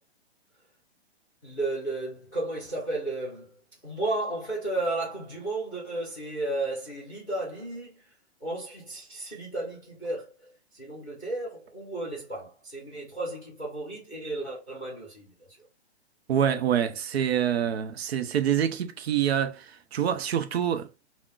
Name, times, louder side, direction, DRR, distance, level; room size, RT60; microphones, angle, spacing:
voice 1, 1.4-3.6 3.8-8.0 8.4-15.5, right 2 dB, 5° right, 0.3 m, -33 dB
voice 2, 16.3-20.9, right 9 dB, 70° right, 0.6 m, -26 dB
3.7 x 2.1 x 2.4 m
hypercardioid pair, 160°, 33 cm